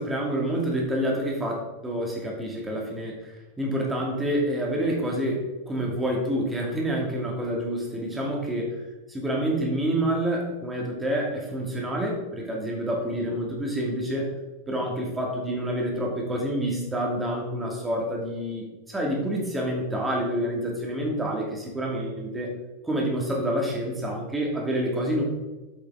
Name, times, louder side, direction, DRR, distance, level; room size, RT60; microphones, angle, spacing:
voice 1, 0.0-8.8 9.1-14.3 14.7-22.5 22.8-25.2, right 1 dB, 10° right, -1 dB, 2.5 m, -28 dB
8.1 x 8.0 x 3.8 m, 1.1 s
figure-of-eight pair, 90°, 0 cm